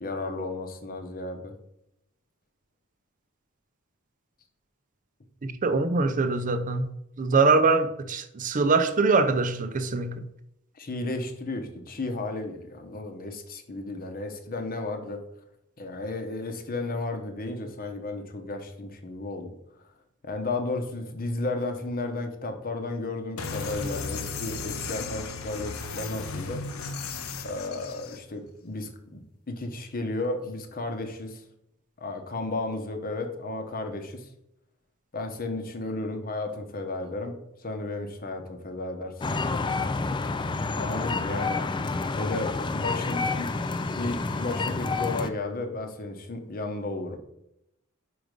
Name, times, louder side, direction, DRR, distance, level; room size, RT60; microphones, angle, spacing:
voice 1, 0.0-1.5 10.7-15.2 15.8-19.5 20.2-26.6 27.4-29.2 29.5-31.4 32.0-34.3 35.1-37.3 37.6-39.8 40.7-41.7 42.2-43.5 43.9-47.2, left 2 dB, 45° left, 1.0 m, -33 dB
voice 2, 5.4-6.9 7.2-10.1, right 3 dB, 40° right, 0.5 m, -23 dB
sound 1, 23.4-28.2, left 4 dB, 90° left, 0.8 m, -35 dB
sound 2, 39.2-45.3, left 3 dB, 20° left, 0.3 m, -29 dB
5.1 x 4.8 x 5.2 m
head